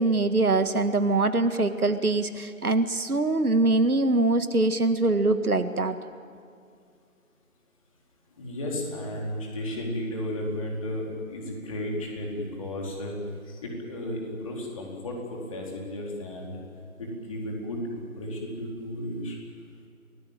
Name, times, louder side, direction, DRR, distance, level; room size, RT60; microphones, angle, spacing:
voice 1, 0.0-6.0, right 2 dB, 80° right, 9 dB, 2.0 m, -23 dB
voice 2, 8.4-13.2 13.4-16.6 17.0-19.3, left 1 dB, 25° left, -1 dB, 4.2 m, -34 dB
28.5 x 18.0 x 9.1 m, 2.3 s
figure-of-eight pair, 165°, 44 cm